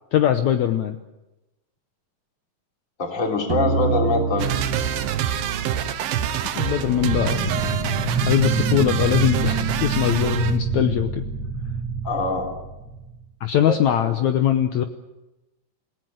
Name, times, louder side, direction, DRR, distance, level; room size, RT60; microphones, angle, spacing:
voice 1, 0.1-1.0 6.6-7.5 8.2-11.3 13.4-14.8, left 11 dB, 70° left, 7 dB, 2.0 m, -21 dB
voice 2, 3.0-4.5 12.0-12.5 13.7-13.8, left 2 dB, 20° left, 1 dB, 3.8 m, -23 dB
sound 1, 3.5-6.4, right 4 dB, 60° right, 1.7 m, -27 dB
sound 2, 4.4-10.6, right 10 dB, 90° right, 3.0 m, -27 dB
sound 3, 6.8-13.2, right 5 dB, 35° right, 2.8 m, -26 dB
28.5 x 17.5 x 7.9 m, 0.98 s
omnidirectional pair, 4.0 m